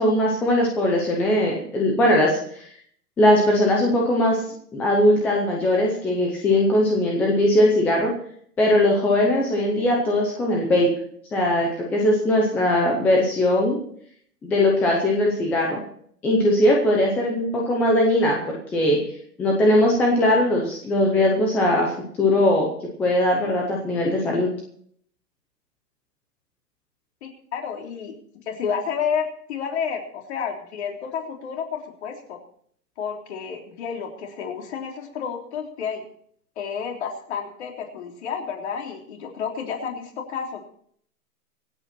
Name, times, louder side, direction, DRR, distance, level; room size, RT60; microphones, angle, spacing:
voice 1, 0.0-2.4 3.2-4.4 4.7-8.1 8.6-10.9 11.3-13.8 14.4-15.8 16.2-18.4 18.7-19.0 19.4-21.9 22.2-22.7 23.0-24.5, left 1 dB, 5° left, -1 dB, 0.6 m, -20 dB
voice 2, 27.2-28.2 28.5-32.4 33.0-36.0 36.6-40.6, left 6 dB, 45° left, 2 dB, 3.5 m, -30 dB
25.0 x 8.6 x 4.3 m, 0.63 s
hypercardioid pair, 155°, 47 cm